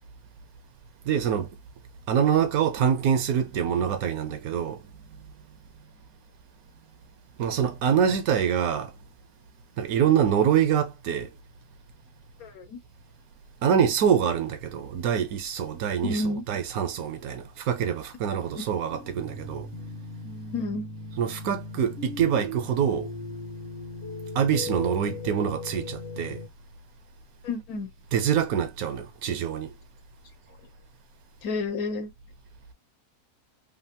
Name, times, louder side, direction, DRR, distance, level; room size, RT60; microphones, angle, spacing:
voice 1, 1.0-1.6 2.1-4.8 7.4-8.9 9.8-11.3 13.6-19.7 21.2-23.1 24.3-26.4 28.1-29.7, right 8 dB, 75° right, 1.1 m, -25 dB
voice 2, 12.4-12.8 16.0-16.4 20.5-20.9 27.4-27.9 31.4-32.1, left 3 dB, 70° left, 1.3 m, -30 dB
sound 1, 18.9-26.5, left 2 dB, 55° left, 1.2 m, -38 dB
3.1 x 2.5 x 2.7 m
omnidirectional pair, 1.6 m